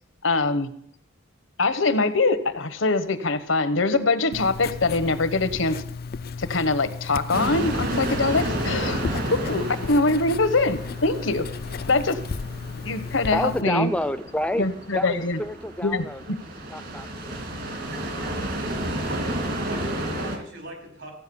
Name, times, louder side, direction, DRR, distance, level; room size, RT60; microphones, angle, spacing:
voice 1, 0.2-0.7 1.6-5.8 6.4-9.1 9.5-11.5 11.9-12.2 12.8-13.9 14.6-15.4 15.8-16.4, left 3 dB, 80° left, 13 dB, 1.2 m, -23 dB
Writing, 4.3-13.6, left 4 dB, 55° left, 0.4 m, -34 dB
sound 1, 7.3-20.4, right 1 dB, 55° right, 2.4 m, -32 dB
voice 2, 12.8-14.7 14.9-16.2 16.7-17.4, left 1 dB, 5° left, 12 dB, 0.6 m, -29 dB
voice 3, 17.6-18.3 19.1-21.1, right 1 dB, 70° right, 1 dB, 4.7 m, -39 dB
15.0 x 9.1 x 7.0 m, 0.72 s
head